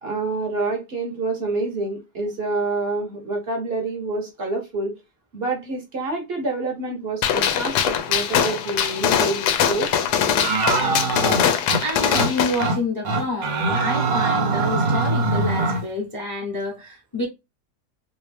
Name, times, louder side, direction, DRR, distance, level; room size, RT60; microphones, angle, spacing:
voice 1, 0.0-4.9 5.3-9.9, right 3 dB, 45° right, 0.9 m, -27 dB
Gunshot gunfire, 7.2-12.7, left 8 dB, 80° left, 1.1 m, -22 dB
sound 1, 10.4-11.8 12.1-12.3 12.6-12.8 13.1-15.8, right 3 dB, 65° right, 1.3 m, -22 dB
voice 2, 11.8-17.3, left 1 dB, 20° left, 0.7 m, -28 dB
2.9 x 2.7 x 3.2 m
omnidirectional pair, 1.7 m